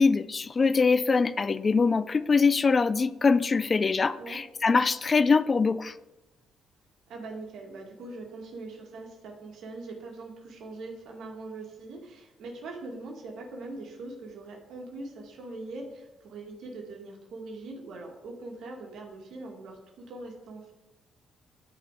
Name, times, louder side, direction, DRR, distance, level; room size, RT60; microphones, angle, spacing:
voice 1, 0.0-5.9, left 4 dB, 35° left, 15 dB, 0.5 m, -23 dB
voice 2, 7.1-20.7, right 2 dB, 75° right, 0 dB, 2.0 m, -42 dB
12.5 x 4.3 x 4.9 m, 1.0 s
cardioid pair, 90°, 0 cm